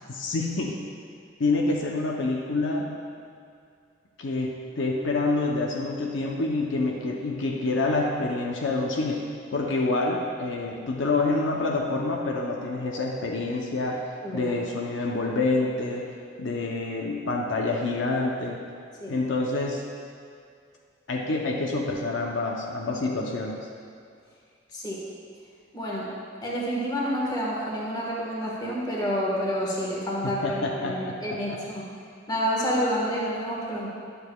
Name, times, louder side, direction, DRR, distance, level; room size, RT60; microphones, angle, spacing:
voice 1, 0.1-0.8 1.4-2.9 4.2-14.1 14.3-16.1 16.4-18.6 19.1-19.8 21.1-23.6 30.4-31.6, left 3 dB, 70° left, -1 dB, 0.6 m, -27 dB
voice 2, 14.2-14.5 19.0-19.1 24.7-25.0 25.7-26.1 26.4-31.8 32.3-33.9, equal, 20° left, -4 dB, 1.3 m, -29 dB
10.0 x 6.7 x 2.3 m, 2.3 s
head